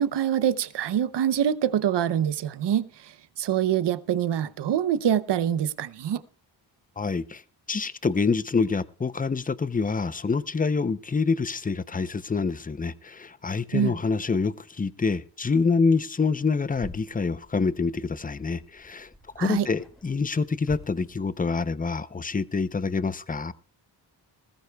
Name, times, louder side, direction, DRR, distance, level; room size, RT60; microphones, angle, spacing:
voice 1, 0.0-6.2 13.7-14.0 19.4-19.7, right 9 dB, 65° right, 0.8 m, -25 dB
voice 2, 7.0-7.4 7.7-19.1 19.4-23.5, left 4 dB, 20° left, 0.6 m, -26 dB
sound 1, 16.7-21.6, equal, ahead, 2.9 m, -48 dB
19.5 x 14.5 x 2.3 m
cardioid pair, 60°, 46 cm